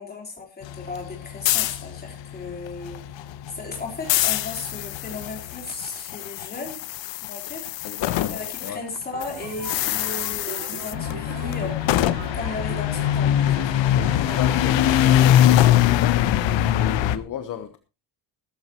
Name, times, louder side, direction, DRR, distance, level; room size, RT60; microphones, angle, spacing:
voice 1, 0.0-3.0 3.5-6.8 7.2-8.0 8.3-13.7 17.0-17.2, left 3 dB, 20° left, 4.0 m, -36 dB
sound 1, 0.6-8.7 9.0-17.2, left 12 dB, 80° left, 1.0 m, -23 dB
voice 2, 7.8-8.8 14.0-16.4 16.8-17.8, left 9 dB, 45° left, 1.1 m, -34 dB
sound 2, 9.1-15.1, right 7 dB, 65° right, 2.6 m, -39 dB
15.5 x 14.5 x 3.0 m
cardioid pair, 175°, 44 cm